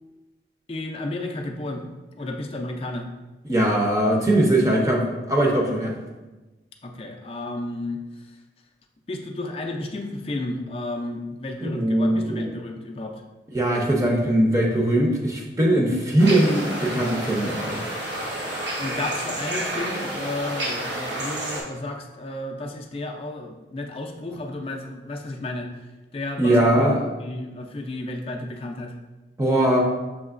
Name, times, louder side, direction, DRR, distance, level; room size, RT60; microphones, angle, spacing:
voice 1, 0.7-1.9 2.2-3.1 6.8-8.0 9.1-13.2 18.8-25.7 26.1-26.9 27.2-28.9, left 2 dB, 30° left, 2 dB, 0.4 m, -32 dB
voice 2, 3.4-6.0 11.6-12.5 13.5-17.8 26.4-27.0 29.4-29.8, right 1 dB, 20° right, -1 dB, 0.6 m, -20 dB
sound 1, 16.2-21.6, right 1 dB, 90° right, 1.2 m, -30 dB
6.2 x 3.0 x 2.4 m, 1.1 s
head